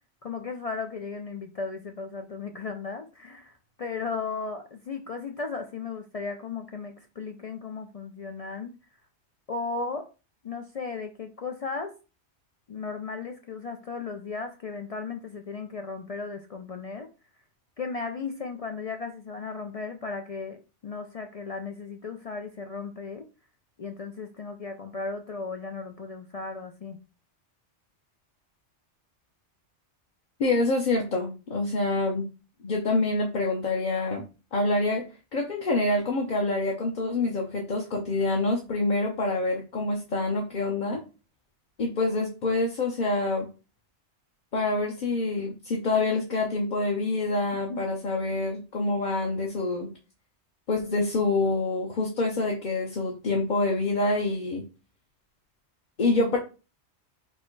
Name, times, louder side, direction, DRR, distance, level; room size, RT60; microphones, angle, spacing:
voice 1, 0.2-8.7 9.5-10.1 10.4-11.9 12.7-17.1 17.8-23.3 23.8-27.0 47.7-47.8, left 4 dB, 65° left, 5 dB, 0.3 m, -35 dB
voice 2, 30.4-32.3 32.6-34.2 34.5-35.0 35.3-41.0 41.8-43.5 44.5-49.9 50.7-54.6 56.0-56.4, left 2 dB, 45° left, 0 dB, 0.7 m, -26 dB
4.3 x 2.1 x 4.5 m, 0.32 s
omnidirectional pair, 1.2 m